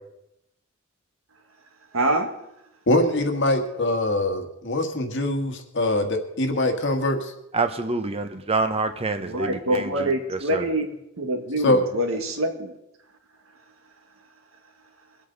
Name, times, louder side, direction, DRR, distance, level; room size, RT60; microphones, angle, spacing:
voice 1, 1.9-2.3 9.2-12.7, right 1 dB, 75° right, 4 dB, 1.8 m, -25 dB
voice 2, 2.9-7.3 11.6-11.8, left 1 dB, 60° left, 5 dB, 1.6 m, -23 dB
voice 3, 7.5-10.6, right 3 dB, 30° right, 9 dB, 0.9 m, -27 dB
23.5 x 8.4 x 4.0 m, 0.85 s
head